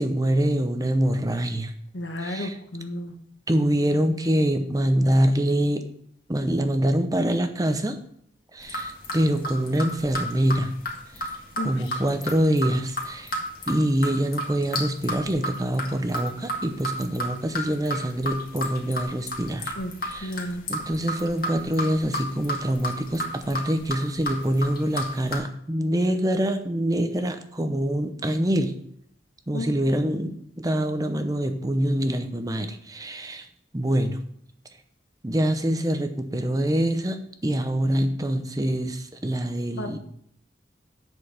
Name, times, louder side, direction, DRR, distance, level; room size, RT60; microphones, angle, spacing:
voice 1, 0.0-1.7 2.2-2.5 3.5-5.8 6.3-8.0 8.5-10.7 11.2-11.3 11.6-13.3 13.7-19.7 20.1-20.4 20.7-28.7 29.5-33.5 33.7-34.2 35.2-40.0, right 1 dB, 20° right, 8 dB, 0.7 m, -25 dB
voice 2, 1.9-3.1 11.6-12.0 19.8-19.9 20.2-20.6 29.5-29.7 39.7-40.0, left 1 dB, 85° left, 5 dB, 1.3 m, -32 dB
sound 1, 8.6-25.4, equal, 55° left, 1.8 m, -32 dB
7.9 x 6.3 x 4.8 m, 0.68 s
head